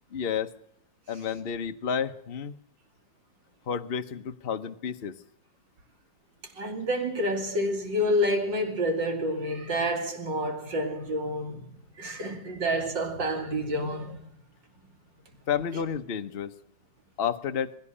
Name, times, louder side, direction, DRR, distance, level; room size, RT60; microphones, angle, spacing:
voice 1, 0.1-0.5 1.1-2.5 3.7-5.1 15.5-16.5 17.2-17.7, left 7 dB, 40° left, 0.9 m, -30 dB
voice 2, 6.4-14.3, equal, 80° right, 3.3 m, -29 dB
20.0 x 16.5 x 8.6 m
omnidirectional pair, 1.9 m